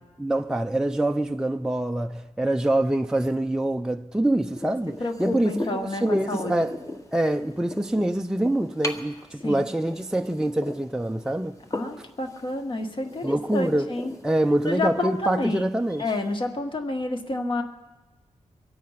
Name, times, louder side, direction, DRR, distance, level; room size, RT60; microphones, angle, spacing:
voice 1, 0.2-6.8 7.1-11.6 13.2-13.9 14.2-16.0, right 1 dB, 5° right, 0.5 m, -25 dB
sound 1, 4.5-16.4, left 1 dB, 25° left, 1.4 m, -40 dB
voice 2, 5.0-6.5 9.4-9.7 11.7-14.1 14.6-15.7 16.0-17.6, left 2 dB, 40° left, 1.5 m, -29 dB
24.5 x 8.4 x 5.7 m
wide cardioid pair, 110°, 13 cm